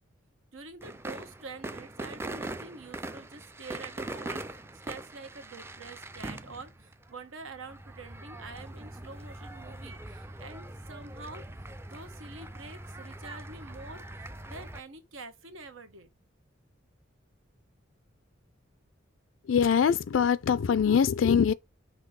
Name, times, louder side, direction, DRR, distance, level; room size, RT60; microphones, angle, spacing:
voice 1, 0.5-11.4 11.9-16.1, right 3 dB, 90° right, 1.4 m, -46 dB
sound 1, 0.8-14.8, right 2 dB, 10° right, 0.4 m, -42 dB
voice 2, 19.4-21.5, left 7 dB, 70° left, 0.4 m, -23 dB
5.9 x 3.0 x 5.3 m
head